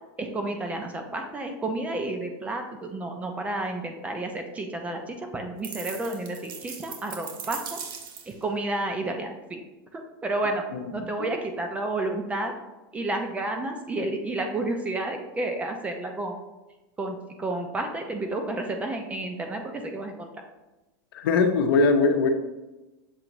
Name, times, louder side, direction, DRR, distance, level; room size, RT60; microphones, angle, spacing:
voice 1, 0.2-7.8 8.3-9.6 9.9-10.6 10.9-12.5 12.9-16.4 17.0-20.3, right 2 dB, 10° right, 4 dB, 0.3 m, -31 dB
sound 1, 5.6-8.4, right 7 dB, 65° right, 0.7 m, -39 dB
voice 2, 21.1-22.3, left 4 dB, 75° left, 6 dB, 0.6 m, -20 dB
6.9 x 2.6 x 2.9 m, 1.1 s
supercardioid pair, 160°, 12 cm